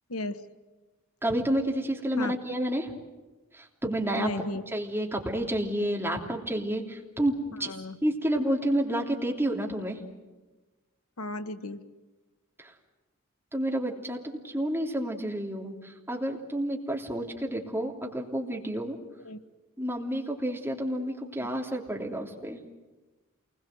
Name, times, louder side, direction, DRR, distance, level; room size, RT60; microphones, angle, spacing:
voice 1, 0.1-0.4 2.2-2.3 4.2-4.6 7.6-8.0 11.2-11.8 19.2-19.4, left 2 dB, 85° left, 10 dB, 1.3 m, -34 dB
voice 2, 1.2-2.9 3.5-4.3 4.7-7.7 8.0-10.0 12.6-12.7 13.5-19.0 19.8-22.6, right 1 dB, 10° right, 0 dB, 3.1 m, -30 dB
28.0 x 21.0 x 7.9 m, 1.2 s
head